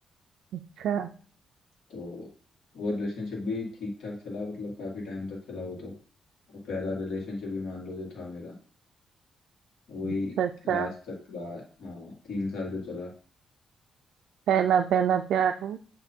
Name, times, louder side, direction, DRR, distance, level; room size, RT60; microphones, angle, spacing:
voice 1, 0.5-1.1 10.0-10.9 14.5-15.8, right 8 dB, 90° right, 5 dB, 0.3 m, -26 dB
voice 2, 1.9-2.3 2.7-5.9 6.5-8.5 9.9-10.3 10.6-13.1, left 3 dB, 75° left, -2 dB, 1.9 m, -35 dB
8.1 x 3.0 x 4.4 m, 0.42 s
wide cardioid pair, 165°, 0 cm